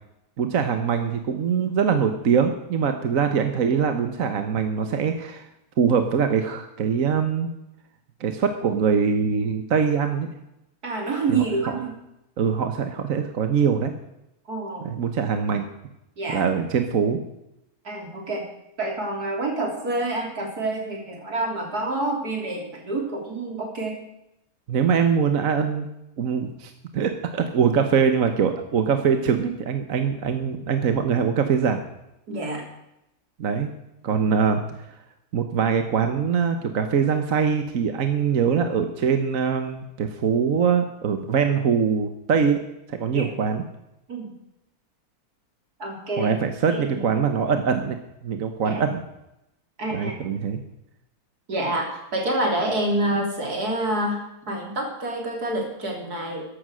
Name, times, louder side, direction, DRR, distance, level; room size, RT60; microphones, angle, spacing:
voice 1, 0.4-5.5 5.8-7.5 8.2-10.3 11.3-11.4 11.7-11.8 12.4-13.9 14.8-15.7 16.3-17.2 24.7-25.9 26.2-31.8 33.4-33.7 34.0-34.6 35.3-42.6 42.9-43.6 46.2-48.0 48.2-49.0 49.9-50.6, right 6 dB, 60° right, 7 dB, 1.5 m, -23 dB
voice 2, 10.8-11.9 14.5-14.9 16.2-16.5 17.8-18.5 18.8-24.0 32.3-32.6 43.1-43.3 44.1-44.3 45.8-46.4 46.7-47.0 48.6-48.8 49.8-50.2 51.5-56.5, right 2 dB, 85° right, 1 dB, 4.0 m, -27 dB
14.0 x 11.5 x 6.3 m, 0.86 s
omnidirectional pair, 1.6 m